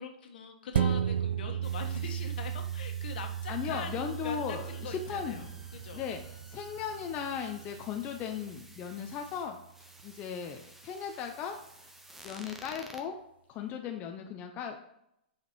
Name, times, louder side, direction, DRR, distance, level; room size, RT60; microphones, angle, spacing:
voice 1, 0.0-5.5 5.7-6.0, left 6 dB, 65° left, 4 dB, 1.4 m, -43 dB
sound 1, 0.7-9.6 10.0-10.1, right 9 dB, 75° right, 0.5 m, -35 dB
sound 2, 1.6-13.0, right 1 dB, 5° right, 0.8 m, -54 dB
voice 2, 3.5-5.5 5.9-6.2 6.5-9.6 10.0-11.6 12.2-13.2 13.5-14.8, left 7 dB, 25° left, 3 dB, 0.6 m, -37 dB
sound 3, 5.0-9.5, right 3 dB, 30° right, 1.6 m, -57 dB
8.1 x 5.1 x 4.5 m, 0.79 s
hypercardioid pair, 140°, 6 cm